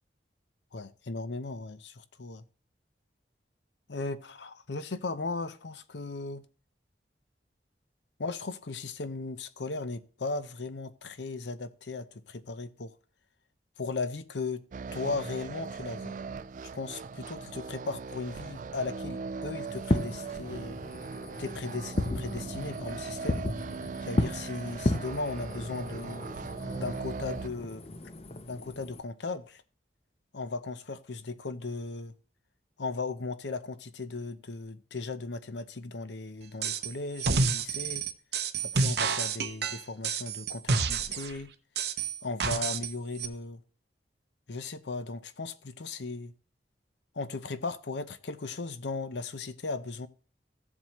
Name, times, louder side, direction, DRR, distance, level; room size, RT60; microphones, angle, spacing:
voice 1, 0.7-2.4 3.9-6.4 8.2-12.9 13.8-16.2 16.7-20.8 21.4-23.4 24.0-26.3 26.8-27.8 28.5-29.6 30.3-32.1 32.8-38.1 38.6-41.5 42.2-43.6 44.5-46.3 47.1-50.1, left 3 dB, 85° left, 0.7 m, -37 dB
sound 1, 14.7-27.5, right 5 dB, 45° right, 0.3 m, -39 dB
Fireworks, 19.7-29.0, left 1 dB, 35° left, 0.6 m, -34 dB
sound 2, 36.6-36.9 37.2-41.3 41.8-42.9 43.2-43.3, right 4 dB, 70° right, 0.8 m, -29 dB
15.0 x 7.4 x 3.1 m
head